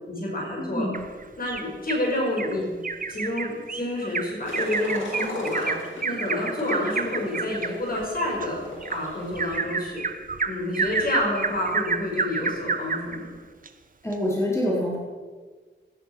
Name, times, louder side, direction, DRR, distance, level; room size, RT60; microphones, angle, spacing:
voice 1, 0.1-0.9 1.4-2.7 3.1-5.8 6.0-8.6 8.9-10.0 10.5-13.3, left 1 dB, 50° left, -2 dB, 5.5 m, -29 dB
voice 2, 0.6-1.0 14.0-15.0, left 1 dB, 15° left, -5 dB, 4.3 m, -26 dB
Bird vocalization bird call bird song, 0.9-2.0 2.4-2.5 2.8-13.2 13.7-13.8 14.1-14.2, right 4 dB, 45° right, 1.0 m, -29 dB
sound 1, 4.5-9.6, left 2 dB, 80° left, 4.1 m, -36 dB
17.5 x 11.0 x 6.1 m, 1.4 s
wide cardioid pair, 120°, 20 cm